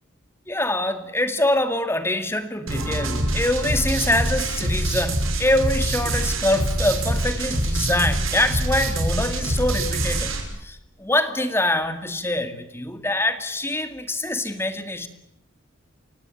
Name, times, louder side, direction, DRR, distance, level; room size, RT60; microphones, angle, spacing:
voice 1, 0.5-15.1, left 1 dB, 10° left, 9 dB, 2.1 m, -24 dB
sound 1, 2.7-10.4, right 1 dB, 80° right, 5.9 m, -25 dB
29.5 x 16.5 x 9.1 m, 0.80 s
head